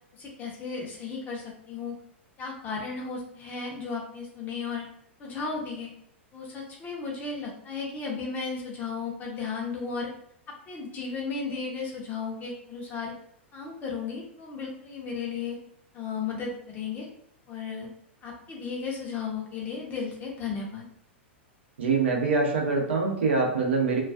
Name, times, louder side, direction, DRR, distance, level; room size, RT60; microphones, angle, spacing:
voice 1, 0.1-2.0 2.4-4.8 5.2-5.9 6.3-10.1 10.5-13.1 13.5-15.6 15.9-17.1 17.5-17.9 18.2-20.8, left 5 dB, 25° left, -1 dB, 0.6 m, -34 dB
voice 2, 21.8-24.0, right 4 dB, 65° right, 0 dB, 0.6 m, -24 dB
2.3 x 2.3 x 2.3 m, 0.69 s
figure-of-eight pair, 95°, 7 cm